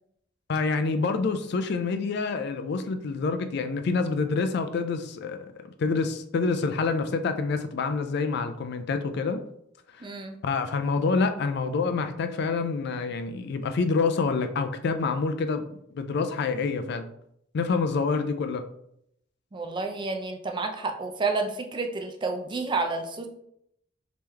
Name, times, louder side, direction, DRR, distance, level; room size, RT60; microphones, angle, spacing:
voice 1, 0.5-9.4 10.0-10.1 10.4-15.7 15.9-17.1 17.5-18.6, left 4 dB, 60° left, 9 dB, 0.4 m, -27 dB
voice 2, 10.0-10.4 19.5-23.3, right 3 dB, 25° right, 4 dB, 0.4 m, -30 dB
3.5 x 3.0 x 3.3 m, 0.74 s
head